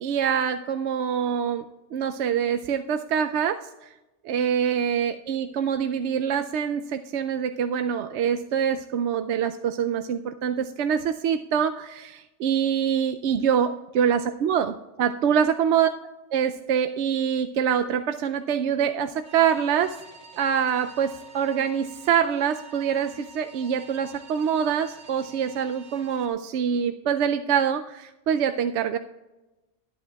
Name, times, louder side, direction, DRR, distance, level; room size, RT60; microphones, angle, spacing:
voice 1, 0.0-1.6 1.9-3.9 4.2-15.9 16.3-20.0 20.4-29.0, right 8 dB, 65° right, 8 dB, 0.8 m, -25 dB
sound 1, 19.2-26.3, right 3 dB, 50° right, 1.7 m, -48 dB
20.5 x 8.4 x 2.3 m, 1.0 s
omnidirectional pair, 1.3 m